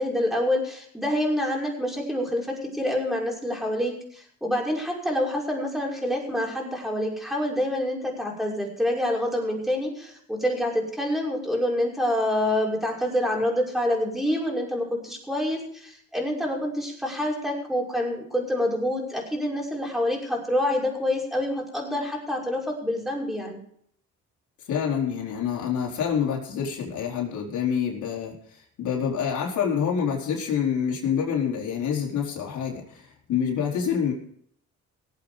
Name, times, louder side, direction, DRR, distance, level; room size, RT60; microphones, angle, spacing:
voice 1, 0.0-23.6, left 1 dB, ahead, -2 dB, 5.7 m, -27 dB
voice 2, 24.7-34.1, left 7 dB, 75° left, -1 dB, 4.5 m, -27 dB
18.5 x 8.3 x 5.1 m, 0.65 s
cardioid pair, 90°, 30 cm